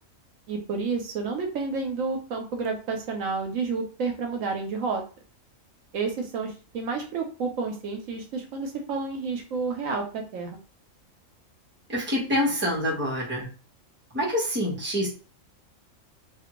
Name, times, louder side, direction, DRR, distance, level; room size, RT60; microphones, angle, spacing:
voice 1, 0.5-5.0 5.9-10.6, right 4 dB, 75° right, 3 dB, 1.0 m, -30 dB
voice 2, 11.9-13.5 14.1-15.1, left 1 dB, 10° right, -4 dB, 0.9 m, -26 dB
2.7 x 2.5 x 2.9 m, 0.36 s
omnidirectional pair, 1.4 m